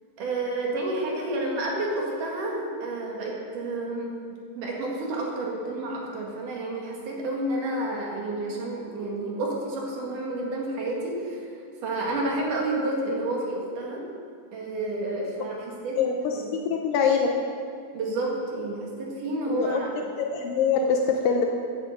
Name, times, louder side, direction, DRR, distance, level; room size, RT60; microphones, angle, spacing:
voice 1, 0.2-4.2 4.5-11.4 11.8-14.0 14.5-16.0 16.3-16.5 17.9-20.0, right 2 dB, 65° right, -2 dB, 3.2 m, -30 dB
voice 2, 15.9-17.3 19.5-19.8 20.2-21.5, left 6 dB, 80° left, 2 dB, 2.4 m, -24 dB
11.0 x 8.4 x 8.1 m, 2.3 s
omnidirectional pair, 4.1 m